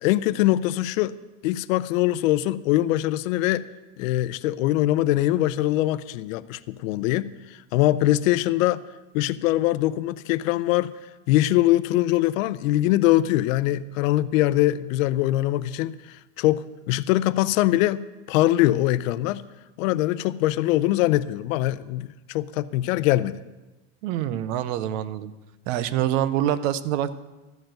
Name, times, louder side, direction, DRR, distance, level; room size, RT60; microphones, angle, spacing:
voice 1, 0.0-1.2 1.4-3.6 4.0-7.3 7.7-8.8 9.1-10.9 11.3-19.4 19.8-23.4, left 15 dB, 85° left, 15 dB, 0.6 m, -22 dB
voice 2, 24.0-25.3 25.7-27.2, right 11 dB, 70° right, 15 dB, 0.7 m, -25 dB
13.0 x 4.7 x 7.6 m, 1.1 s
supercardioid pair, 160°, 39 cm